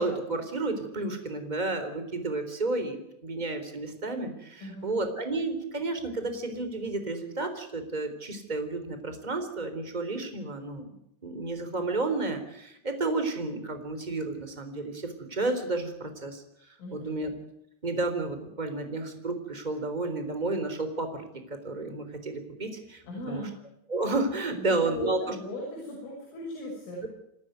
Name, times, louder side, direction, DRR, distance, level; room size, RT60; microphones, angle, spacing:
voice 1, 0.0-10.9 11.2-16.4 16.9-17.3 17.8-23.4 23.9-25.3 27.0-27.1, right 2 dB, 10° right, 8 dB, 2.7 m, -31 dB
voice 2, 4.6-4.9 16.8-17.2 23.0-23.6 24.5-27.0, left 1 dB, 80° left, -3 dB, 8.9 m, -38 dB
28.0 x 13.5 x 9.4 m, 0.79 s
omnidirectional pair, 5.6 m